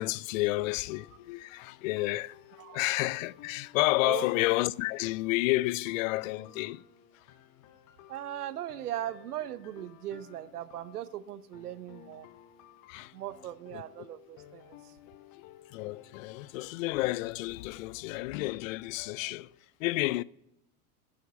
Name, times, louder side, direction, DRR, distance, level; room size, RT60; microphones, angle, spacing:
voice 1, 0.0-6.8 7.1-7.3 12.9-13.1 13.7-13.8 15.0-20.2, left 20 dB, 60° left, 0.5 m, -31 dB
sound 1, 0.8-19.3, left 11 dB, 45° left, 1.1 m, -56 dB
voice 2, 8.1-12.3 13.1-14.9, right 12 dB, 85° right, 0.8 m, -39 dB
10.0 x 8.5 x 7.0 m
hypercardioid pair, 100°, 45 cm